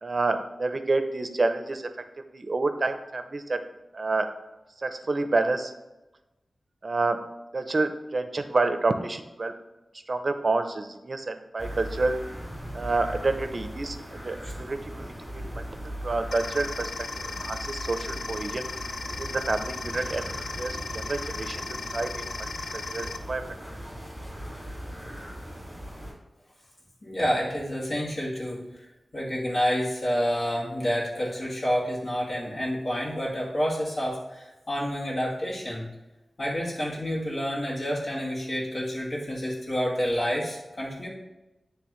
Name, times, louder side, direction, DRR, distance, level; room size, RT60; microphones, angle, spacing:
voice 1, 0.0-1.9 2.3-3.6 3.9-4.3 4.8-5.7 6.8-9.5 10.1-12.2 12.7-14.0 14.2-15.6 16.0-16.9 17.2-18.6 19.2-20.3 20.6-21.6 21.9-22.3 22.7-23.6, right 3 dB, 50° right, 8 dB, 0.6 m, -28 dB
sound 1, 11.6-26.1, equal, ahead, 2.2 m, -39 dB
sound 2, 16.3-23.2, left 4 dB, 70° left, 0.4 m, -36 dB
voice 2, 27.0-28.8 29.1-35.9 36.4-41.1, equal, 55° left, -6 dB, 2.3 m, -29 dB
9.8 x 3.3 x 3.1 m, 1.0 s
wide cardioid pair, 70°, 0 cm